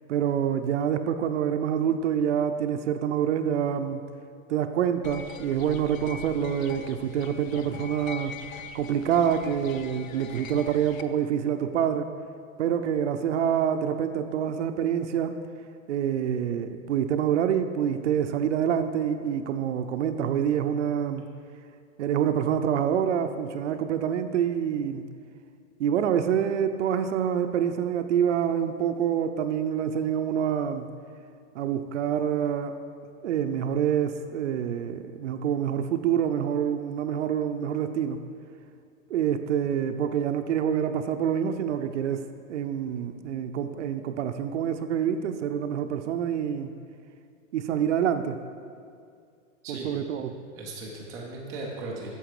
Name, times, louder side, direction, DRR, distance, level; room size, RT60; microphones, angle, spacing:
voice 1, 0.1-4.0 4.5-8.4 8.7-12.1 12.6-15.4 15.9-21.3 22.0-25.0 25.8-30.9 31.5-32.8 33.2-38.2 39.1-46.7 47.5-48.4 49.7-50.3, right 8 dB, 65° right, 8 dB, 0.6 m, -26 dB
sound 1, 5.0-11.0, left 7 dB, 80° left, 0.7 m, -42 dB
voice 2, 49.6-50.1 50.5-52.1, right 2 dB, 10° right, -3 dB, 0.4 m, -37 dB
9.0 x 6.9 x 4.8 m, 2.3 s
supercardioid pair, 165°, 39 cm